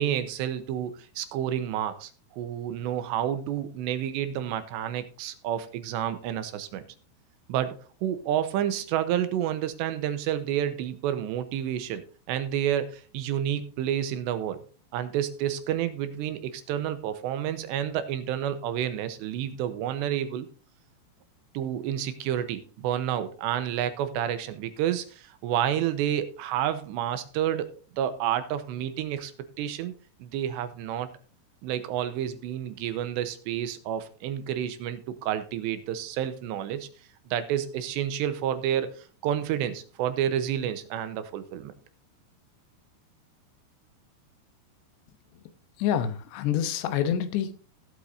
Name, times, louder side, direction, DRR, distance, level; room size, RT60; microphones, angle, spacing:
voice 1, 0.0-6.8 7.5-14.6 14.9-20.5 21.5-27.7 28.0-29.3 29.6-29.9 30.2-31.1 31.6-36.9 37.3-41.7, right 10 dB, 85° right, 10 dB, 3.1 m, -30 dB
voice 2, 45.8-47.6, left 9 dB, 80° left, 10 dB, 3.1 m, -27 dB
17.5 x 8.2 x 2.7 m, 0.38 s
omnidirectional pair, 5.0 m